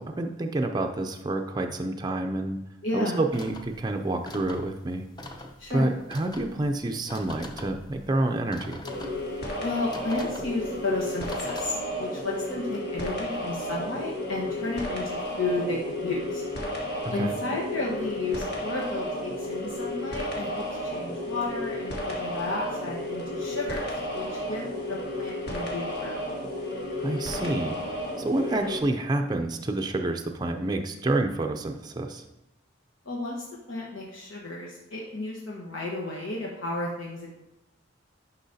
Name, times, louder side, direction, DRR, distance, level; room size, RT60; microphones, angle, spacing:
voice 1, 0.0-2.6 2.9-5.1 5.7-8.8 17.0-17.3 27.0-27.8 28.2-32.2, right 2 dB, 20° right, 4 dB, 0.4 m, -28 dB
voice 2, 2.8-3.2 5.6-5.9 9.6-16.4 17.1-26.2 33.0-37.3, left 2 dB, 85° left, -3 dB, 1.2 m, -33 dB
sound 1, 3.3-11.7, left 1 dB, 20° left, 0.7 m, -44 dB
sound 2, 8.8-28.8, left 1 dB, 55° left, 1.5 m, -33 dB
10.0 x 5.7 x 2.7 m, 0.92 s
head